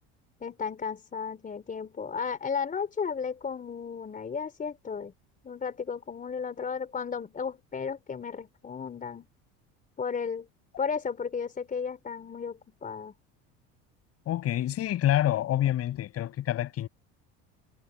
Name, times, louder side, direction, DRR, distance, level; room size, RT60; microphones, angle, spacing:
voice 1, 0.4-5.1 5.4-9.3 10.0-10.5 10.8-13.1, left 6 dB, 25° left, 4.2 m, -34 dB
voice 2, 14.2-16.9, left 12 dB, 50° left, 6.9 m, -27 dB
supercardioid pair, 115°, 31 cm